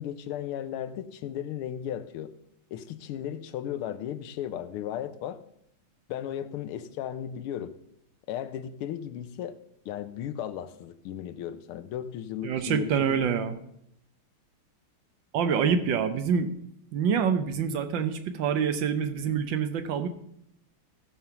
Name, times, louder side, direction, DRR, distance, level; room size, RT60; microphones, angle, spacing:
voice 1, 0.0-2.3 2.7-5.4 6.1-7.7 8.3-9.6 9.8-13.2, left 10 dB, 85° left, 13 dB, 1.6 m, -35 dB
voice 2, 12.4-13.6 15.3-16.5 16.9-20.1, right 7 dB, 70° right, 10 dB, 1.4 m, -26 dB
14.0 x 5.5 x 5.8 m, 0.73 s
omnidirectional pair, 2.4 m